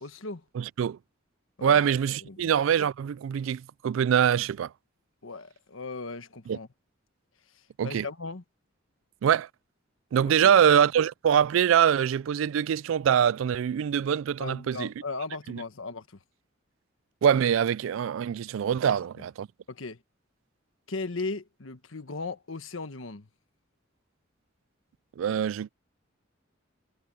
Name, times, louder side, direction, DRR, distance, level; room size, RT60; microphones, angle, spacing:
voice 1, 0.0-0.4 1.6-1.8 2.3-2.5 5.2-6.7 7.5-8.4 10.2-10.5 14.4-16.2 18.8-19.0 19.7-20.0 20.9-23.3, left 3 dB, 85° left, 1.4 m, -37 dB
voice 2, 0.6-1.0 1.6-4.7 6.5-6.6 7.8-8.1 9.2-9.5 10.1-14.9 15.5-15.6 17.2-19.5 25.2-25.7, right 8 dB, 80° right, 0.3 m, -24 dB
head